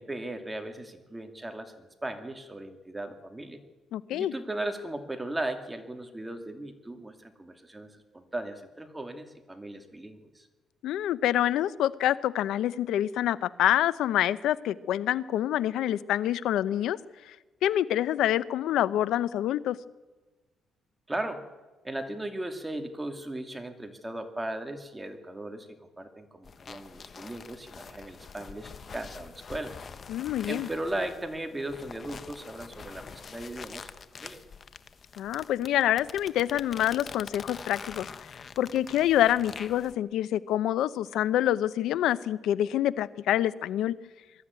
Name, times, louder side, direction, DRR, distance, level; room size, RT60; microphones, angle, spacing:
voice 1, 0.0-3.6 4.1-10.5 21.1-21.4 21.8-25.7 26.0-29.8 30.5-33.9 34.2-34.4, right 1 dB, 15° right, 6 dB, 2.4 m, -37 dB
voice 2, 3.9-4.3 10.8-17.0 17.3-17.4 17.6-19.8 30.1-30.7 35.2-38.1 38.6-43.9, left 12 dB, 85° left, 17 dB, 0.7 m, -26 dB
sound 1, 26.4-39.9, left 5 dB, 45° left, 1.3 m, -45 dB
21.5 x 13.0 x 9.6 m, 1.2 s
cardioid pair, 90°, 0 cm